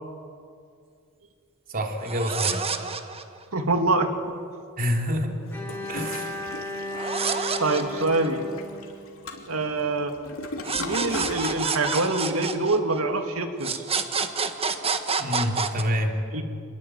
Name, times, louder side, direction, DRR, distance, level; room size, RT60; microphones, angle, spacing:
voice 1, 1.7-2.7 4.8-5.4 5.9-6.3 15.2-16.2, equal, 45° right, 3 dB, 3.1 m, -27 dB
sound 1, 2.0-3.4 6.9-8.5 10.6-13.2 13.6-15.8, right 5 dB, 30° right, 1.5 m, -28 dB
voice 2, 3.5-4.3 7.6-8.4 9.5-10.1 10.8-13.8 16.3-16.4, right 2 dB, 90° right, 5 dB, 2.5 m, -25 dB
Toilet flush, 5.5-11.6, left 2 dB, 70° left, 3.0 m, -38 dB
Bowed string instrument, 5.5-9.6, left 1 dB, 10° left, 4.1 m, -35 dB
27.0 x 21.5 x 9.1 m, 2.3 s
head